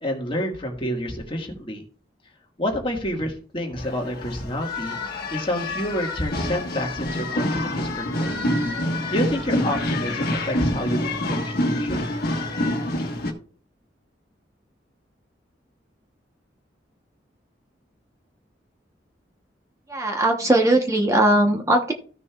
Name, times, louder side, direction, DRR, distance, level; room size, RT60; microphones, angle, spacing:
voice 1, 0.0-1.8 2.6-5.0 5.3-8.4 9.1-12.0, equal, 30° left, 1 dB, 1.7 m, -28 dB
sound 1, 3.8-13.3, left 1 dB, 60° left, 1.4 m, -27 dB
voice 2, 19.9-21.9, right 1 dB, 20° right, 2 dB, 1.0 m, -19 dB
14.5 x 6.7 x 2.4 m, 0.41 s
head